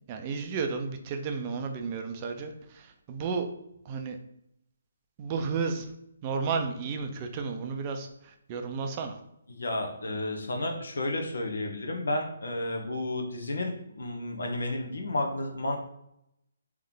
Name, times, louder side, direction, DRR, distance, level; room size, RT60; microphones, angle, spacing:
voice 1, 0.0-3.5 3.8-4.2 5.2-5.9 6.2-9.2, right 5 dB, 30° right, 5 dB, 0.5 m, -33 dB
voice 2, 9.5-15.8, left 1 dB, 70° left, 2 dB, 1.0 m, -32 dB
3.4 x 3.0 x 3.8 m, 0.78 s
figure-of-eight pair, 145°, 0 cm